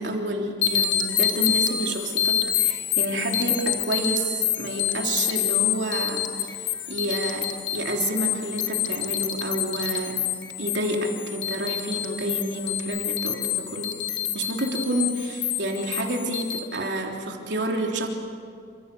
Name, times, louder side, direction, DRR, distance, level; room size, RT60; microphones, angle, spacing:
voice 1, 0.0-10.2 10.6-14.0 14.3-18.1, right 1 dB, 75° right, 1 dB, 3.4 m, -29 dB
sound 1, 0.6-16.6, left 10 dB, 85° left, 1.6 m, -27 dB
28.5 x 26.5 x 7.0 m, 2.3 s
head